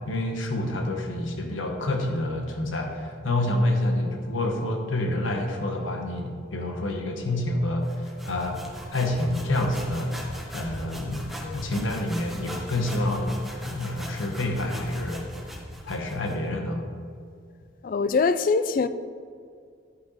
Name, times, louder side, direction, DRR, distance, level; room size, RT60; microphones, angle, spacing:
voice 1, 0.1-8.6 8.9-10.2 10.5-13.4 13.6-15.3 15.8-16.8, left 1 dB, 85° left, 1.1 m, -28 dB
sound 1, 7.8-16.4, equal, ahead, 1.0 m, -39 dB
voice 2, 17.8-18.9, left 4 dB, 45° left, 0.3 m, -23 dB
11.0 x 5.8 x 4.0 m
head